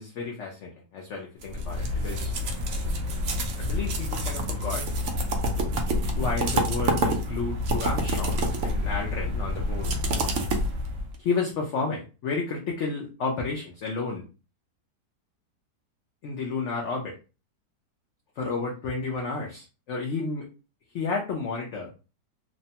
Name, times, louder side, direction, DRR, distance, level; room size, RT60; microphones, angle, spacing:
voice 1, 0.0-2.3 3.6-4.9 6.1-10.0 11.2-14.2 16.2-17.2 18.4-20.5 20.9-21.9, left 4 dB, 70° left, -1 dB, 0.7 m, -31 dB
sound 1, 1.4-11.2, equal, 75° right, 0.6 m, -27 dB
2.9 x 2.1 x 2.7 m, 0.32 s
omnidirectional pair, 1.8 m